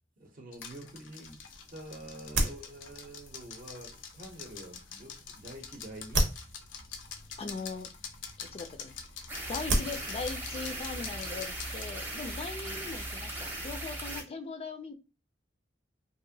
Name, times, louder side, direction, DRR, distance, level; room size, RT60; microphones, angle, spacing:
voice 1, 0.2-1.4 1.7-6.3 11.0-11.1 12.6-12.9, right 1 dB, 50° right, 0.6 m, -47 dB
sound 1, 0.5-11.9, left 7 dB, 90° left, 0.5 m, -46 dB
sound 2, 1.2-11.5, right 2 dB, 85° right, 0.8 m, -37 dB
voice 2, 7.4-7.9 8.4-8.9 9.5-14.9, left 4 dB, 35° left, 0.3 m, -40 dB
sound 3, 9.3-14.2, right 1 dB, 10° right, 0.6 m, -38 dB
2.8 x 2.5 x 2.6 m
head